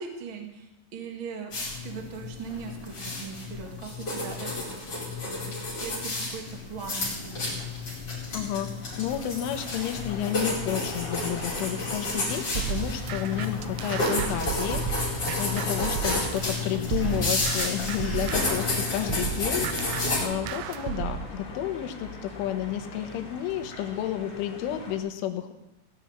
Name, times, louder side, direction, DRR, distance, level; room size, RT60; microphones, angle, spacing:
voice 1, 0.0-1.5 1.8-5.4 5.8-7.5, right 6 dB, 60° right, 4 dB, 1.3 m, -40 dB
sound 1, 1.5-20.2, left 2 dB, 25° left, 4.8 m, -31 dB
voice 2, 8.3-8.7 9.0-25.5, left 10 dB, 85° left, 6 dB, 3.6 m, -31 dB
sound 2, 8.8-25.0, left 2 dB, 45° left, 4.2 m, -42 dB
sound 3, 12.6-16.5 16.9-21.3, right 11 dB, 80° right, 2.6 m, -33 dB
17.5 x 7.1 x 8.7 m, 0.92 s
omnidirectional pair, 5.5 m